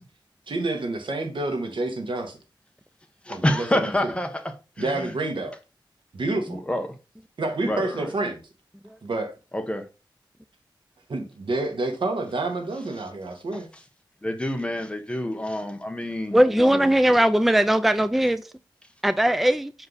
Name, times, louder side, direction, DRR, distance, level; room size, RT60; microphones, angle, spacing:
voice 1, 0.5-2.4 3.3-4.1 4.8-5.5 6.1-6.6 7.4-8.4 9.0-9.3 11.1-13.7, right 2 dB, 85° right, 1.6 m, -28 dB
voice 2, 3.2-4.4 4.8-5.1 6.5-6.9 7.7-8.1 9.5-9.9 14.2-16.9, left 1 dB, 15° left, 1.0 m, -28 dB
voice 3, 16.3-18.4 19.0-19.7, right 1 dB, ahead, 0.4 m, -19 dB
6.6 x 4.7 x 4.0 m
wide cardioid pair, 110°, 8 cm